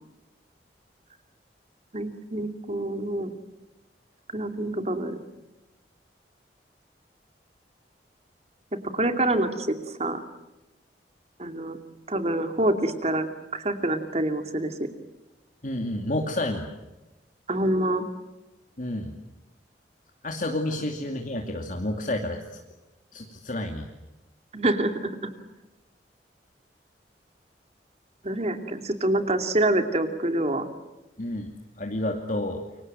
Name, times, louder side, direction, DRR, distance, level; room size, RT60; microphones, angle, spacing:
voice 1, 1.9-3.3 4.3-5.2 8.9-10.2 11.4-11.8 12.1-13.3 13.5-14.7 17.5-18.1 24.5-25.2 28.2-30.7, right 1 dB, 35° right, 7 dB, 2.7 m, -26 dB
voice 2, 15.6-16.7 18.8-19.1 20.2-22.6 23.1-23.9 31.2-32.6, left 1 dB, 45° left, 2 dB, 2.6 m, -30 dB
29.0 x 24.5 x 7.7 m, 1.0 s
head